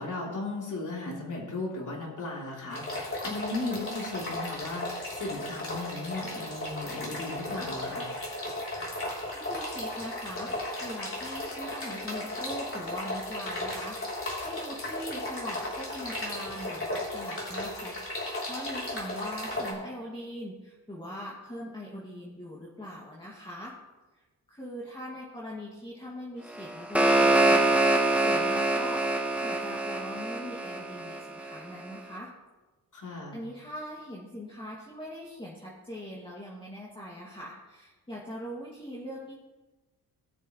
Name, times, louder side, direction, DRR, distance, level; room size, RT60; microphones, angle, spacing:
voice 1, 0.0-8.1 32.9-33.4, left 2 dB, 50° left, -3 dB, 3.5 m, -36 dB
sound 1, 2.7-19.7, left 1 dB, 30° left, 3.6 m, -35 dB
voice 2, 9.3-23.7 24.1-24.2 24.5-29.0 29.4-32.3 33.3-39.3, equal, 10° left, -6 dB, 2.3 m, -41 dB
sound 2, 26.5-31.6, right 2 dB, 5° right, 1.0 m, -25 dB
19.0 x 6.8 x 3.2 m, 1.2 s
cardioid pair, 100°, 40 cm